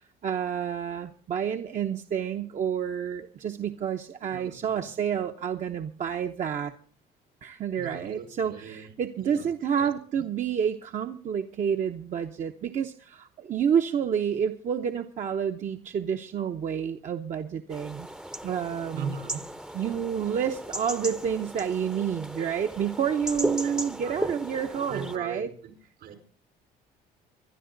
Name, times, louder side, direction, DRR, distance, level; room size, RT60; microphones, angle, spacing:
voice 1, 0.0-6.8 7.4-18.1 18.4-19.1 19.7-25.5, right 8 dB, 45° right, 5 dB, 0.9 m, -29 dB
voice 2, 4.3-4.8 7.8-8.9 9.2-9.5 9.8-9.9 18.9-19.4 23.6-24.3 24.7-25.7 26.0-26.2, right 6 dB, 70° right, 6 dB, 4.7 m, -39 dB
sound 1, 17.7-25.2, right 1 dB, 5° right, 0.7 m, -36 dB
24.5 x 11.0 x 3.9 m, 0.42 s
cardioid pair, 110°, 17 cm